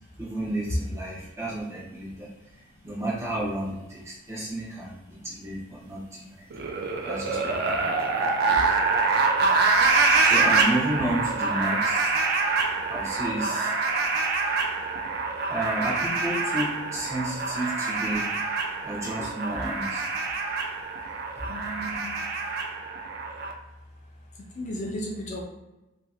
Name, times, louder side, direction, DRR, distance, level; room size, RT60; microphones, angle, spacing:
voice 1, 0.2-6.5 7.0-8.6 10.2-12.1 12.8-13.7 15.5-18.3 18.8-20.1 21.4-21.5, right 1 dB, 15° right, -6 dB, 0.8 m, -32 dB
sound 1, 6.5-23.5, right 4 dB, 55° right, 0.4 m, -25 dB
voice 2, 21.5-22.2 24.6-25.4, equal, 40° left, 0 dB, 0.4 m, -34 dB
2.8 x 2.5 x 2.3 m, 0.98 s
head